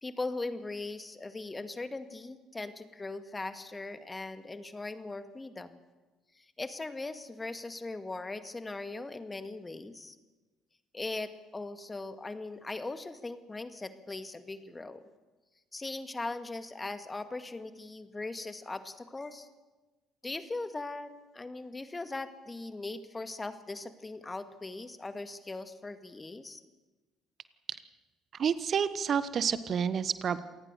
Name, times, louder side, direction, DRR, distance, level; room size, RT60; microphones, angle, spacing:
voice 1, 0.0-5.8 6.4-10.2 10.9-15.0 15.7-19.5 20.2-26.6, left 2 dB, 20° left, 9 dB, 2.1 m, -39 dB
voice 2, 28.4-30.4, right 7 dB, 45° right, 14 dB, 1.2 m, -29 dB
27.5 x 18.5 x 6.9 m, 1.2 s
hypercardioid pair, 55°, 0 cm